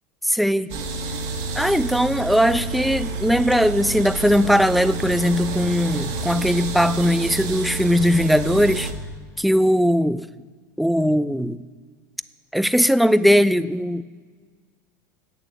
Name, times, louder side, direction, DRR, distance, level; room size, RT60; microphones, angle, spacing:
voice 1, 0.2-0.7 1.5-8.9 9.4-10.3 10.8-11.6 12.5-14.0, equal, ahead, 15 dB, 0.3 m, -19 dB
sound 1, 0.7-8.9, right 3 dB, 60° right, 1.5 m, -29 dB
8.4 x 6.8 x 8.4 m, 1.5 s
hypercardioid pair, 95°, 10 cm